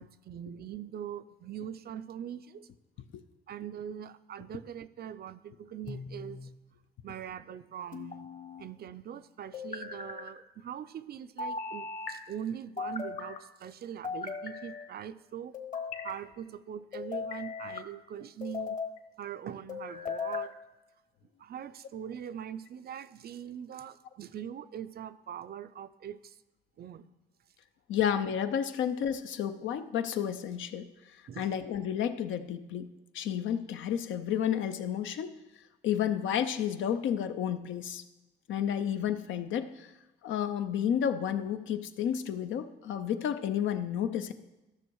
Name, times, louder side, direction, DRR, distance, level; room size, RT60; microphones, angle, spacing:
voice 1, 0.0-2.7 3.5-6.5 7.0-8.3 8.6-15.5 16.0-18.8 19.2-20.5 21.4-26.4 26.8-27.1 31.3-31.5, right 9 dB, 50° right, 13 dB, 0.5 m, -42 dB
sound 1, 5.9-6.6 7.9-8.7 9.5-10.3 11.4-12.2 12.8-13.4 14.0-14.9 15.5-16.2 16.9-17.9 18.4-19.0 19.7-20.5, left 5 dB, 40° left, 1.2 m, -38 dB
voice 2, 27.9-30.9 31.4-35.3 35.8-38.0 38.5-39.9 40.2-44.3, left 9 dB, 75° left, 9 dB, 0.7 m, -31 dB
13.0 x 6.2 x 4.7 m, 1.1 s
cardioid pair, 90°, 20 cm